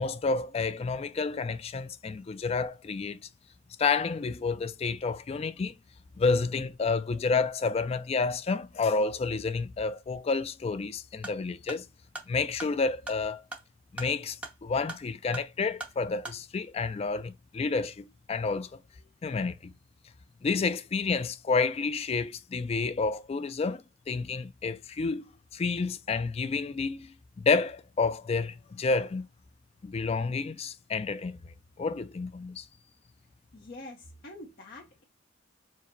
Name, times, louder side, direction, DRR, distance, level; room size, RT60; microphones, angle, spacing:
voice 1, 0.0-3.2 3.8-5.7 6.2-11.8 12.3-13.4 13.9-18.7 19.2-19.7 20.4-29.3 29.8-31.4 31.8-32.6, left 4 dB, 30° left, 0.3 m, -30 dB
sound 1, 11.1-16.4, right 2 dB, 5° right, 0.9 m, -44 dB
voice 2, 33.5-35.0, left 2 dB, 50° left, 0.7 m, -46 dB
4.6 x 2.1 x 4.3 m
head